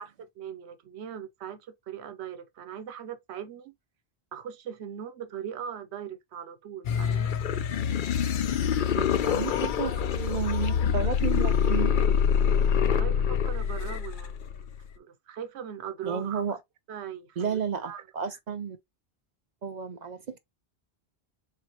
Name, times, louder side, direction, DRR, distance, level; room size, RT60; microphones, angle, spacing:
voice 1, 0.0-3.7 4.3-7.3 9.6-9.7 12.9-14.7 15.0-16.4 16.9-18.0, right 8 dB, 90° right, 0.9 m, -40 dB
sound 1, 6.8-14.9, left 7 dB, 60° left, 0.6 m, -25 dB
voice 2, 9.0-12.0 16.0-16.6 17.4-18.8 19.6-20.4, right 7 dB, 55° right, 0.5 m, -32 dB
4.4 x 3.7 x 2.8 m
omnidirectional pair, 1.1 m